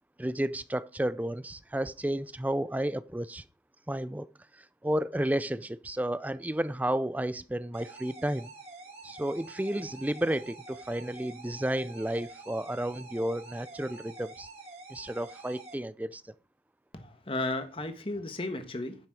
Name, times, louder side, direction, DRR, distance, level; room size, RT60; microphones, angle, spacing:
voice 1, 0.2-3.4 3.9-4.3 4.6-8.5 9.0-14.5 14.9-16.2, right 1 dB, 10° right, 0.4 m, -32 dB
Simple Alarm, 7.7-15.7, right 3 dB, 35° right, 2.5 m, -47 dB
voice 2, 16.9-19.0, left 2 dB, 30° left, 1.4 m, -34 dB
9.7 x 7.1 x 4.9 m
head